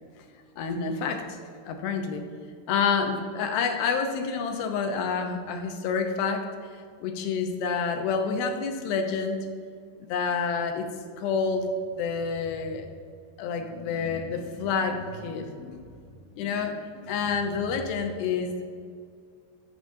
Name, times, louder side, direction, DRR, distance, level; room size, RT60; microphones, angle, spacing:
voice 1, 0.6-1.4 1.7-2.3 2.7-6.5 7.0-9.4 10.0-10.9 11.2-11.7 12.0-12.9 13.4-15.8 16.4-18.6, left 5 dB, 85° left, 5 dB, 2.7 m, -28 dB
14.0 x 6.6 x 2.7 m, 2.2 s
omnidirectional pair, 4.3 m